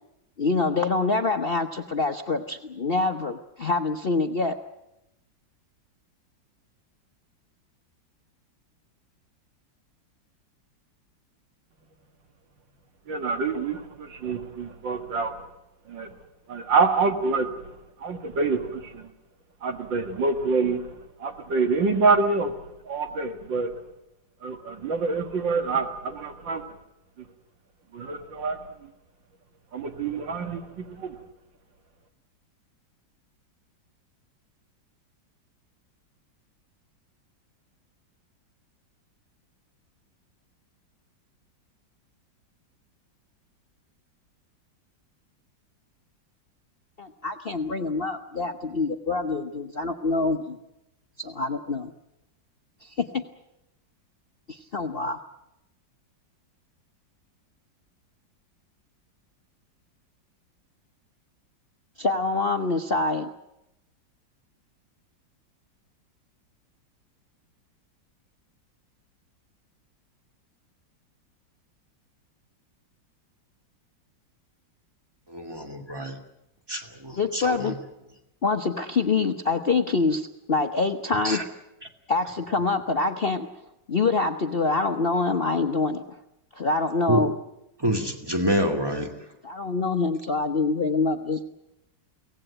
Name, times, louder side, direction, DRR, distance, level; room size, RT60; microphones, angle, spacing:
voice 1, 0.4-4.6 47.0-50.6 51.2-51.9 52.8-53.2 54.5-55.2 62.0-63.3 77.2-77.8 78.4-81.4 82.1-83.5 83.9-86.0 86.5-87.3 89.4-91.4, left 3 dB, 40° left, 1.0 m, -25 dB
voice 2, 13.1-15.4 15.9-16.1 16.5-17.7 18.0-19.1 19.6-20.9 21.2-22.5 22.9-23.7 24.4-26.6 27.2-27.3 27.9-28.6 29.7-31.2, right 4 dB, 80° right, 2.5 m, -26 dB
voice 3, 75.3-76.2 76.7-77.7 81.2-81.4 87.1-87.2 87.8-89.1, equal, 10° right, 2.5 m, -27 dB
24.0 x 18.0 x 8.8 m
omnidirectional pair, 2.0 m